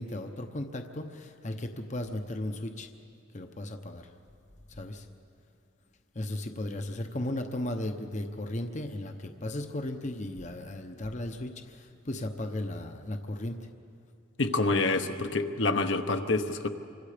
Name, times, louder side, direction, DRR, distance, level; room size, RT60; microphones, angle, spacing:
voice 1, 0.0-2.9 3.3-4.1 4.7-5.1 6.1-13.6, left 1 dB, 35° left, 6 dB, 0.9 m, -36 dB
voice 2, 14.4-16.7, left 3 dB, 60° left, 6 dB, 1.0 m, -27 dB
27.5 x 25.0 x 5.1 m, 2.5 s
head